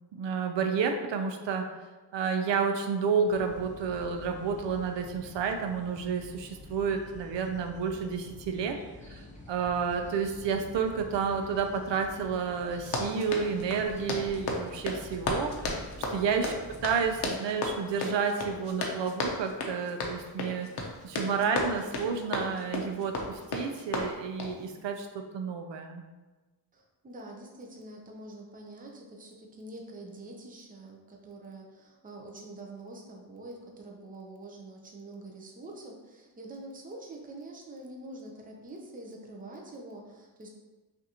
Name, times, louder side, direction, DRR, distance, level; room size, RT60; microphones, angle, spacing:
voice 1, 0.1-1.7 2.1-8.8 9.1-15.7 16.1-26.0, right 6 dB, 85° right, 5 dB, 0.6 m, -30 dB
sound 1, 3.2-17.3, left 2 dB, 15° left, 0.7 m, -48 dB
Run, 12.8-24.6, left 2 dB, 65° left, 0.7 m, -34 dB
voice 2, 16.0-16.5 26.7-40.5, right 2 dB, 20° right, 0 dB, 0.5 m, -45 dB
5.7 x 2.6 x 2.9 m, 1.2 s
wide cardioid pair, 150°, 42 cm